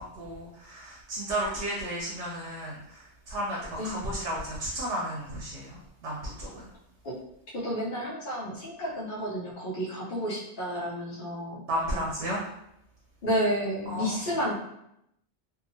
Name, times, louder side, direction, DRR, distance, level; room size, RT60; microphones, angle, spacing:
voice 1, 0.0-6.7 11.7-12.4 13.9-14.2, right 1 dB, 80° right, -4 dB, 0.9 m, -33 dB
voice 2, 7.5-11.6 13.2-14.5, equal, 55° left, -7 dB, 0.8 m, -31 dB
2.8 x 2.3 x 2.5 m, 0.79 s
omnidirectional pair, 1.2 m